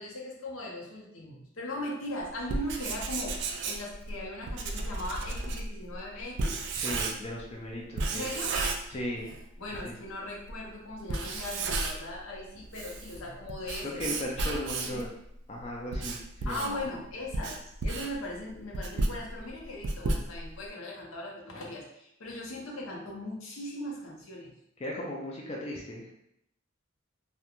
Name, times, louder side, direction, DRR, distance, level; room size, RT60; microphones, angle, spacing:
voice 1, 0.0-6.6 8.1-8.6 9.6-14.2 14.8-15.1 16.4-24.6, left 1 dB, 80° left, -2 dB, 0.7 m, -39 dB
Writing, 2.4-7.4 8.0-9.4 9.7-9.8 10.5-10.6 11.0-12.2 12.5-15.1 15.6-20.7, right 3 dB, 55° right, 0.3 m, -33 dB
voice 2, 6.7-8.3 8.9-9.3 9.8-9.9 13.8-15.1 15.5-16.8 24.8-26.1, left 1 dB, 30° left, -2 dB, 0.3 m, -37 dB
2.4 x 2.1 x 2.9 m, 0.75 s
head